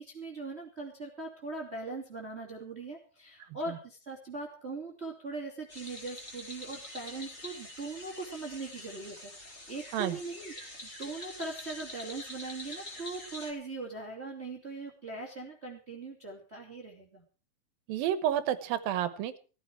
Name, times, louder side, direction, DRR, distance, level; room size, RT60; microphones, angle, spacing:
voice 1, 0.0-17.2, right 3 dB, 20° right, 0 dB, 2.7 m, -40 dB
sound 1, 5.7-13.5, left 1 dB, 20° left, 3.3 m, -45 dB
voice 2, 17.9-19.4, right 10 dB, 80° right, 14 dB, 2.9 m, -30 dB
16.5 x 14.5 x 4.6 m, 0.37 s
omnidirectional pair, 4.1 m